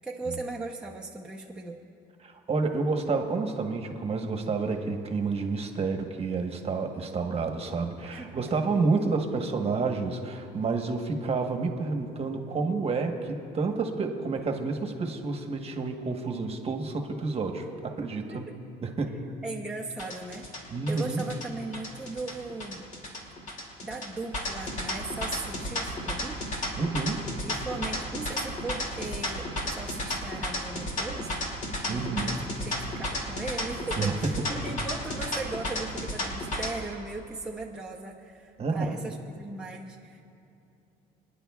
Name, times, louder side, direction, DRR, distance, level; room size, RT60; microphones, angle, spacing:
voice 1, 0.0-1.8 8.0-8.4 18.3-18.5 19.4-20.5 20.9-22.9 23.8-26.4 27.4-31.5 31.8-40.2, right 3 dB, 5° right, -2 dB, 0.8 m, -38 dB
voice 2, 2.2-18.5 18.8-19.3 20.7-21.2 26.8-27.4 31.9-32.5 33.9-34.6 38.6-38.9, right 4 dB, 35° right, 4 dB, 1.2 m, -29 dB
sound 1, 20.0-36.7, left 1 dB, 50° left, 2.5 m, -33 dB
27.5 x 10.0 x 2.4 m, 2.6 s
cardioid pair, 110°, 17 cm